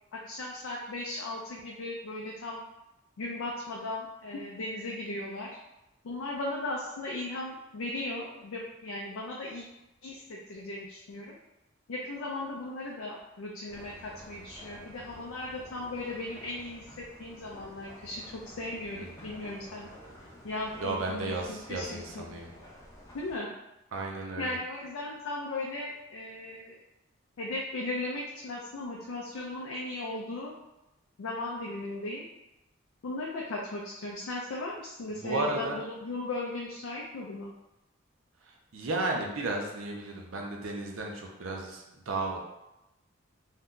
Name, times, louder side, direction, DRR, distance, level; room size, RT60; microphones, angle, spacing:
voice 1, 0.1-2.6 3.2-5.6 6.0-9.6 10.0-11.3 11.9-19.9 20.4-22.4 23.1-23.5 24.4-26.8 27.4-30.5 31.2-32.3 33.0-37.5, left 2 dB, 80° left, -3 dB, 0.4 m, -37 dB
sound 1, 13.7-23.4, equal, 15° left, 0.6 m, -51 dB
voice 2, 18.9-19.3 20.8-22.5 23.9-24.5 35.1-35.8 38.5-42.4, right 2 dB, 75° right, 0 dB, 0.6 m, -34 dB
2.7 x 2.2 x 3.6 m, 0.94 s
head